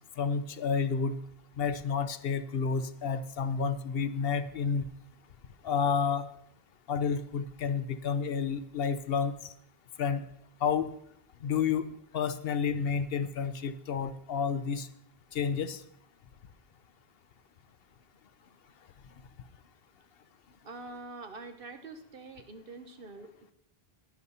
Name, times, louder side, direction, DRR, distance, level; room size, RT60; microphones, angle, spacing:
voice 1, 0.2-1.2 1.6-4.8 5.6-6.3 6.9-9.3 10.0-10.2 10.6-10.9 11.4-14.9 15.3-15.8, left 6 dB, 70° left, 12 dB, 0.9 m, -30 dB
voice 2, 20.6-23.5, right 3 dB, 65° right, 7 dB, 1.3 m, -45 dB
11.0 x 11.0 x 4.1 m, 0.68 s
omnidirectional pair, 1.0 m